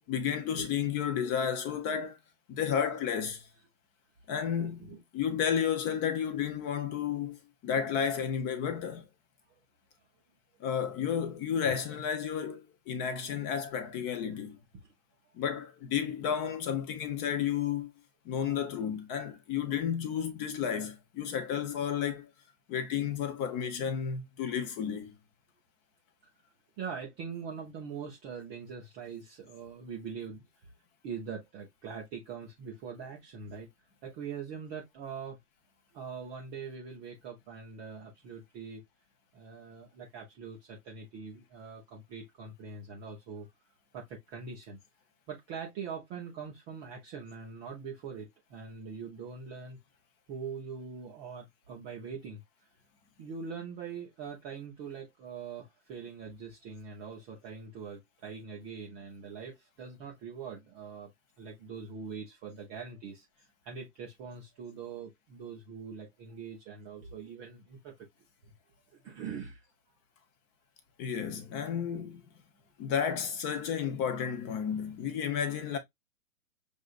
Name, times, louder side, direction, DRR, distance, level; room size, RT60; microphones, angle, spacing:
voice 1, 0.1-2.2 2.5-3.5 4.3-9.1 10.6-14.6 15.3-17.9 18.2-22.3 22.7-25.1 71.0-72.2 72.8-75.8, left 8 dB, 25° left, 0.8 m, -32 dB
voice 2, 26.8-30.7 31.0-33.7 34.0-35.4 35.9-38.8 39.3-43.5 43.9-44.8 45.3-49.8 50.3-52.4 53.2-61.1 61.4-67.9 68.4-68.5 69.0-69.6, right 6 dB, 15° right, 0.5 m, -43 dB
6.4 x 2.6 x 2.4 m
hypercardioid pair, 130°, 45 cm